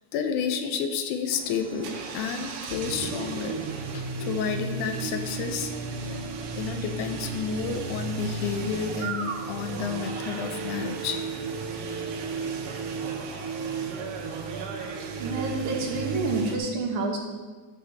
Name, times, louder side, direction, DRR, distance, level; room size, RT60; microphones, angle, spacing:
voice 1, 0.0-3.6 3.9-5.7 6.0-6.2 6.6-11.2, left 6 dB, 90° left, 6 dB, 2.1 m, -31 dB
sound 1, 1.3-16.6, right 4 dB, 90° right, 2.5 m, -33 dB
voice 2, 15.2-17.2, right 3 dB, 75° right, 0 dB, 2.4 m, -28 dB
12.0 x 6.9 x 3.4 m, 1.5 s
omnidirectional pair, 3.5 m